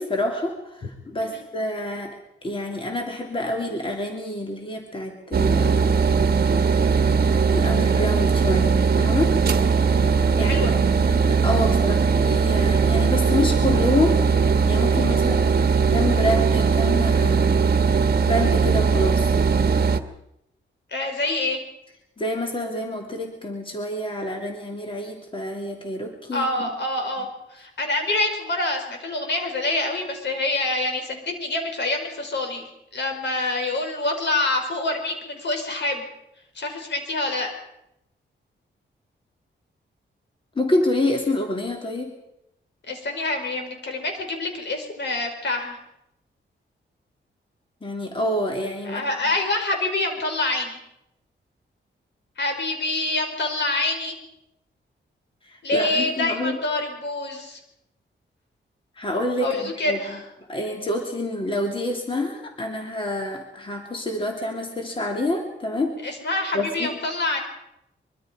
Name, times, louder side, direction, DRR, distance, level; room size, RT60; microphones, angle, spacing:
voice 1, 0.0-2.2 2.4-5.9 7.5-9.4 10.3-17.5 18.2-19.3 22.2-26.7 40.5-42.1 47.8-49.0 55.4-56.6 59.0-60.0 60.5-65.9 66.5-66.9, left 1 dB, 25° left, 2 dB, 3.1 m, -27 dB
sound 1, 5.3-20.0, right 5 dB, 50° right, 1.3 m, -19 dB
voice 2, 9.5-10.7 11.6-11.8 15.0-15.2 20.9-21.6 26.3-36.1 36.6-37.5 42.9-45.8 48.9-50.8 52.4-54.2 55.6-57.6 59.4-60.2 66.0-67.4, left 2 dB, 65° left, 4 dB, 5.1 m, -26 dB
24.0 x 24.0 x 5.2 m, 0.83 s
wide cardioid pair, 125°, 20 cm